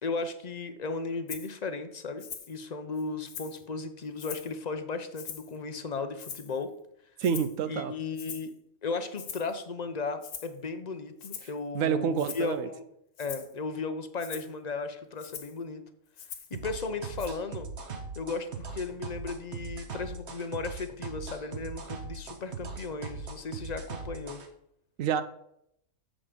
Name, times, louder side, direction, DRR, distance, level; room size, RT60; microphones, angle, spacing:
voice 1, 0.0-6.7 7.7-8.5 8.8-12.9 13.2-15.8 16.5-17.7 18.2-24.4, left 4 dB, 40° left, 9 dB, 0.6 m, -35 dB
Rattle (instrument), 1.3-1.5 2.2-2.5 3.0-3.6 4.2-4.6 5.1-5.6 6.2-6.6 7.2-7.6 8.2-8.5 9.2-9.5 10.2-10.5 11.2-11.6 12.2-12.5 13.2-13.5 14.2-14.5 15.2-15.6 16.2-16.6 17.2-17.3, left 7 dB, 85° left, 1.4 m, -42 dB
voice 2, 7.2-7.9 11.7-12.7 25.0-25.2, right 7 dB, 75° right, 12 dB, 1.0 m, -28 dB
sound 1, 16.5-24.5, right 4 dB, 55° right, 1.3 m, -39 dB
7.1 x 7.1 x 5.1 m, 0.75 s
omnidirectional pair, 1.4 m